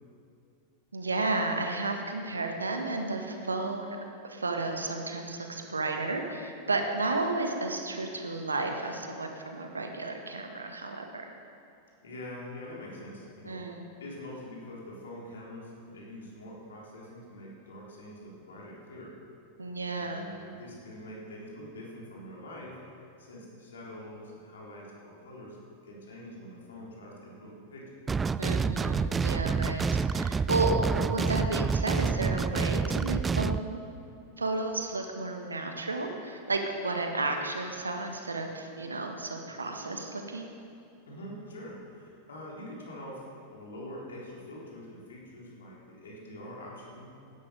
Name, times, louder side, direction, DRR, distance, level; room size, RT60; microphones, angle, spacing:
voice 1, 0.9-4.0 4.2-11.3 13.4-13.8 19.6-20.3 28.4-33.8 34.4-40.5, right 2 dB, 75° right, 4 dB, 1.6 m, -32 dB
voice 2, 12.0-13.6 14.0-19.1 20.0-22.8 23.2-25.6 25.8-27.8 41.1-43.2 43.5-47.1, left 1 dB, 65° left, -4 dB, 3.9 m, -44 dB
sound 1, 28.1-33.6, right 5 dB, 15° right, 0.3 m, -28 dB
16.0 x 12.0 x 5.3 m, 2.6 s
figure-of-eight pair, 90°, 0 cm